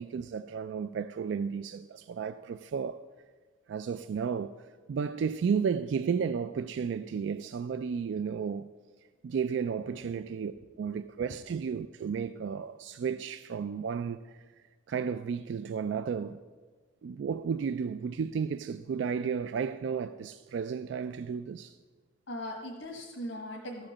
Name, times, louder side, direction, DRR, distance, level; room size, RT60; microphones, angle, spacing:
voice 1, 0.0-3.0 3.7-4.6 4.9-8.7 9.2-10.5 10.8-14.4 14.9-16.4 17.0-21.8, right 6 dB, 65° right, 0.3 m, -33 dB
voice 2, 10.8-11.2 22.3-23.9, left 1 dB, 85° left, 1.4 m, -40 dB
14.0 x 5.1 x 7.2 m
head